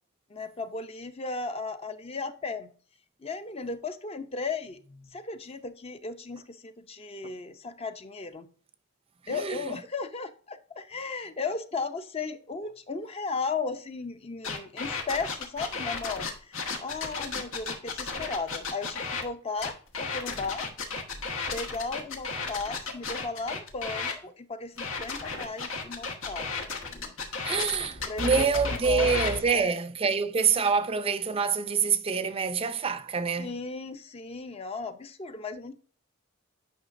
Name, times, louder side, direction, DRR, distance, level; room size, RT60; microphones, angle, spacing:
voice 1, 0.3-2.7 3.2-8.5 9.3-20.6 21.5-27.1 28.1-29.8 33.4-35.7, left 4 dB, 30° left, 0.5 m, -36 dB
voice 2, 9.3-9.7 27.4-33.5, right 5 dB, 30° right, 0.4 m, -26 dB
sound 1, 14.4-19.2 19.6-24.1 24.8-29.4, left 4 dB, 90° left, 1.3 m, -33 dB
9.3 x 5.7 x 2.5 m
head